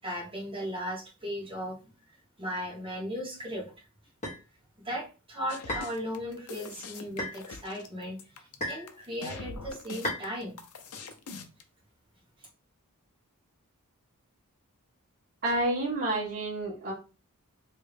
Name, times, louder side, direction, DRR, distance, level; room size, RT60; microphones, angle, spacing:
voice 1, 0.0-1.9 2.4-3.7 4.8-10.6 10.9-11.0, equal, 25° right, -2 dB, 1.1 m, -37 dB
sound 1, 4.2-4.4 5.7-5.9 7.2-7.4 8.6-8.9 10.0-10.3, left 1 dB, 30° left, 1.3 m, -33 dB
sound 2, 5.5-11.6, left 4 dB, 85° left, 0.6 m, -43 dB
voice 2, 15.4-16.9, right 2 dB, 45° right, -6 dB, 1.4 m, -29 dB
3.2 x 2.7 x 3.3 m, 0.33 s
head